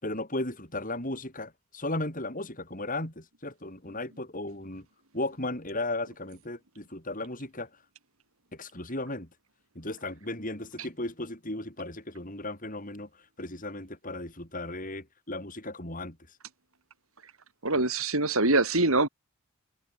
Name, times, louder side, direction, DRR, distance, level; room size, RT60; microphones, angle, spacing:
voice 1, 0.0-4.9 5.1-7.7 8.5-9.3 9.8-13.1 13.4-16.2, left 2 dB, 35° left, 7.0 m, -35 dB
voice 2, 17.6-19.1, right 2 dB, 70° right, 5.0 m, -24 dB
head